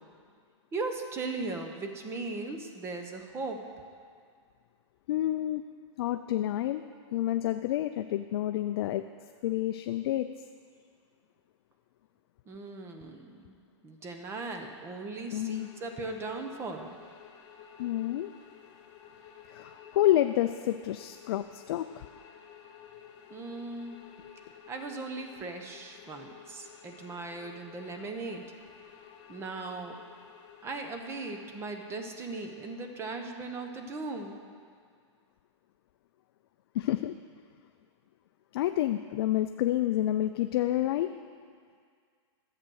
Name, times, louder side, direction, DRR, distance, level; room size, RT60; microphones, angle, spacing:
voice 1, 0.7-3.6 12.5-13.6 13.8-17.0 23.3-24.0 24.7-28.5 29.3-30.0 30.6-34.4, right 3 dB, 15° right, 4 dB, 0.9 m, -38 dB
voice 2, 5.1-5.6 6.0-6.8 7.1-9.0 9.4-10.3 15.3-15.7 17.8-18.3 19.5-22.1 36.7-37.1 38.5-41.1, left 13 dB, 50° left, 9 dB, 0.4 m, -29 dB
sound 1, 15.5-33.1, left 8 dB, 25° left, 0.9 m, -53 dB
12.0 x 7.7 x 6.3 m, 2.1 s
hypercardioid pair, 150°, 16 cm